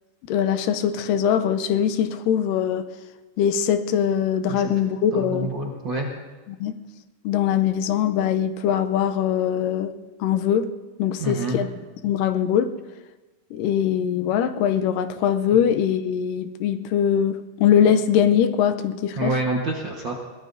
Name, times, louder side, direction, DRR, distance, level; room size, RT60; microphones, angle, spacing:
voice 1, 0.3-2.9 3.4-5.5 6.5-6.7 7.2-9.9 10.2-10.7 11.0-11.7 12.0-12.7 13.5-19.3, left 9 dB, 90° left, 9 dB, 2.3 m, -22 dB
voice 2, 5.1-6.1 11.2-11.6 19.2-20.2, right 2 dB, 55° right, -1 dB, 1.3 m, -27 dB
23.0 x 17.5 x 2.7 m, 1.2 s
omnidirectional pair, 3.9 m